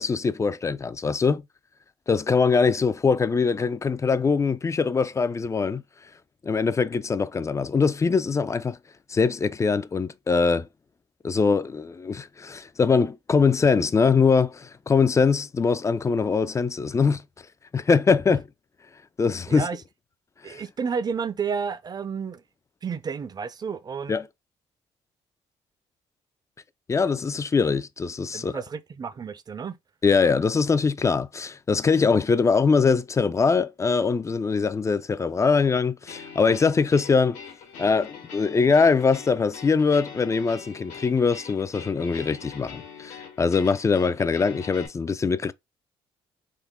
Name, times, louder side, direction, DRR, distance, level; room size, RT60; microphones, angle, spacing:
voice 1, 0.0-1.4 2.1-5.8 6.4-8.8 9.1-10.7 11.2-17.2 17.7-18.4 19.2-19.7 20.4-20.6 24.1-24.3 26.9-28.6 30.0-37.4 37.8-45.5, left 5 dB, 25° left, 0.3 m, -22 dB
voice 2, 20.4-22.4 22.8-24.1 28.3-29.7, right 6 dB, 35° right, 0.5 m, -31 dB
sound 1, 36.1-44.9, left 6 dB, 90° left, 1.2 m, -43 dB
3.7 x 2.1 x 3.5 m
cardioid pair, 80°, 12 cm